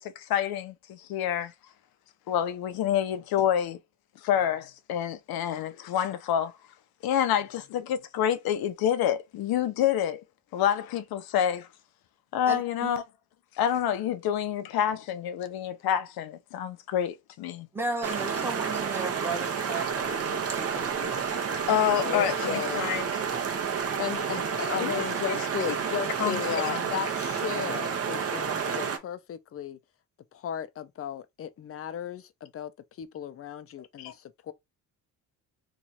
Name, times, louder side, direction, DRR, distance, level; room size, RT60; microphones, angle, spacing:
voice 1, 0.0-1.5 2.3-3.8 4.2-6.5 7.0-10.2 10.5-11.7 12.3-13.0 13.6-17.7 21.7-23.1 24.8-25.4 26.2-26.8 34.0-34.1, left 10 dB, 80° left, 0.6 m, -28 dB
voice 2, 12.5-12.9 17.7-21.3, right 3 dB, 5° right, 1.1 m, -35 dB
sound 1, 18.0-29.0, right 6 dB, 40° right, 0.8 m, -30 dB
voice 3, 22.0-22.9 24.0-29.8 30.3-32.7 33.0-34.5, left 9 dB, 40° left, 0.4 m, -35 dB
2.9 x 2.4 x 4.1 m
cardioid pair, 125°, 36 cm